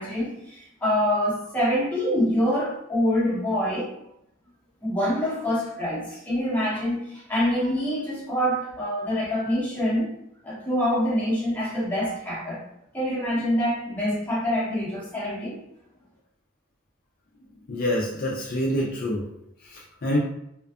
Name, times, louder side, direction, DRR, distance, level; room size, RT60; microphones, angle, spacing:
voice 1, 0.0-3.9 4.8-10.1 10.4-12.6 12.9-15.6, equal, 10° left, -8 dB, 0.9 m, -25 dB
voice 2, 17.7-19.2 20.0-20.2, left 1 dB, 45° left, -3 dB, 0.4 m, -26 dB
2.5 x 2.3 x 2.3 m, 0.77 s
head